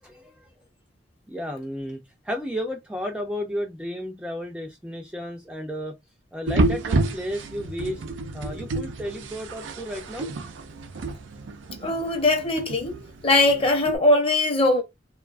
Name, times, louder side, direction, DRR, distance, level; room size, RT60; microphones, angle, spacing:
voice 1, 0.0-0.5 1.3-5.9 6.3-8.0 8.3-10.3, equal, 5° right, 0.3 m, -33 dB
sound 1, 6.5-14.0, right 2 dB, 80° right, 0.5 m, -29 dB
voice 2, 11.8-12.9 13.2-14.8, left 2 dB, 30° left, 0.7 m, -20 dB
2.6 x 2.2 x 2.4 m
head